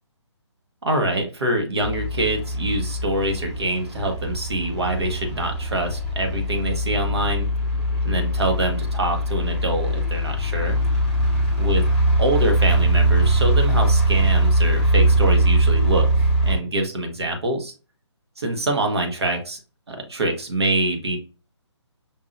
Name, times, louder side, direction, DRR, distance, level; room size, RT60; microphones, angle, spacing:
voice 1, 0.8-7.5 8.0-10.8 11.6-11.8 12.2-17.7 18.4-19.6 19.9-21.2, right 1 dB, 60° right, 3 dB, 1.2 m, -25 dB
sound 1, 1.8-16.6, right 1 dB, 5° right, 1.3 m, -21 dB
5.5 x 2.6 x 2.6 m, 0.33 s
figure-of-eight pair, 145°, 15 cm